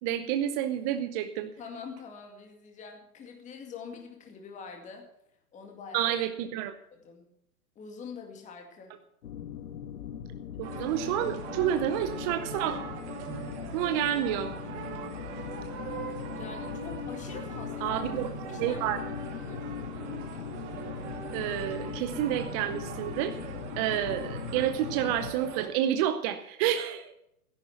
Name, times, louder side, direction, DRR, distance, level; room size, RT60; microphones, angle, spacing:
voice 1, 0.0-1.5 5.9-6.7 10.6-12.8 13.7-14.5 17.8-18.3 18.6-19.0 21.3-23.3 23.8-27.1, right 11 dB, 25° right, 8 dB, 0.7 m, -29 dB
voice 2, 1.6-5.1 5.5-6.2 6.9-7.3 7.8-9.0 16.3-18.0 18.5-18.9 19.2-19.8, left 5 dB, 15° left, 3 dB, 2.2 m, -45 dB
sound 1, 9.2-25.3, left 8 dB, 65° left, 1.3 m, -39 dB
sound 2, 10.6-25.7, right 7 dB, 45° right, 2.6 m, -41 dB
13.0 x 11.0 x 5.9 m, 0.78 s
hypercardioid pair, 135°, 46 cm